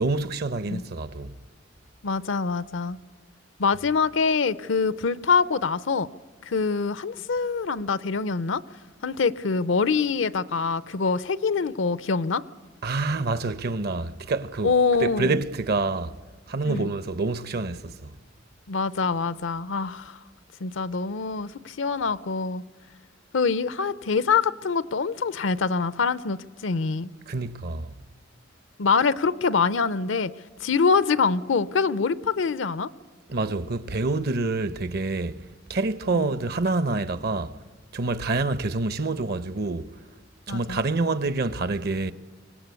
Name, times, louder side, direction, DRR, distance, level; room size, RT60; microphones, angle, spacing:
voice 1, 0.0-1.4 12.8-14.7 15.0-16.1 16.5-18.2 27.3-27.9 33.3-35.4 35.7-37.6 37.9-39.9 40.5-42.1, right 3 dB, 55° right, 0.8 m, -27 dB
voice 2, 2.0-3.0 3.6-6.1 6.5-8.6 9.0-12.4 14.6-15.4 16.6-16.9 18.7-20.2 20.6-22.6 23.3-27.1 28.8-30.3 30.6-32.9 36.1-36.3 40.5-40.8, left 5 dB, 70° left, 0.6 m, -25 dB
24.5 x 18.0 x 8.3 m
head